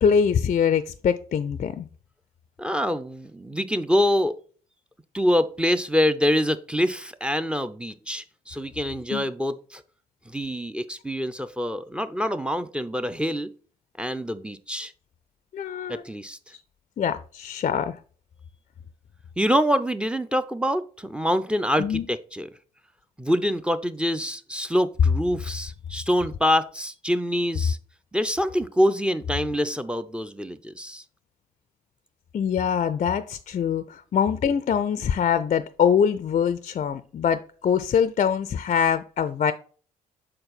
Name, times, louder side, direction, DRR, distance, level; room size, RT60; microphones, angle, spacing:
voice 1, 0.0-1.9 9.1-9.3 15.5-16.0 17.0-18.0 21.8-22.1 32.3-39.5, left 7 dB, 40° left, 13 dB, 0.4 m, -23 dB
voice 2, 2.6-4.4 5.1-9.8 10.3-13.5 14.0-14.9 15.9-16.4 19.4-22.5 23.2-27.8 28.1-31.0, equal, 5° right, 13 dB, 0.6 m, -25 dB
6.4 x 4.3 x 4.0 m, 0.41 s
hypercardioid pair, 50°, 19 cm